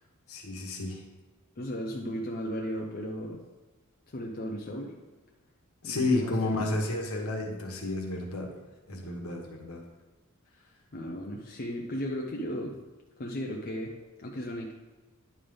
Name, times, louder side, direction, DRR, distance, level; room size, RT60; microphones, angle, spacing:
voice 1, 0.3-1.0 5.8-8.5 8.9-9.8, left 2 dB, 70° left, 1 dB, 1.3 m, -31 dB
voice 2, 1.6-3.4 4.1-4.9 5.8-6.8 10.9-12.8 13.2-14.7, equal, 40° left, -1 dB, 0.6 m, -35 dB
10.0 x 3.5 x 5.2 m, 1.2 s
head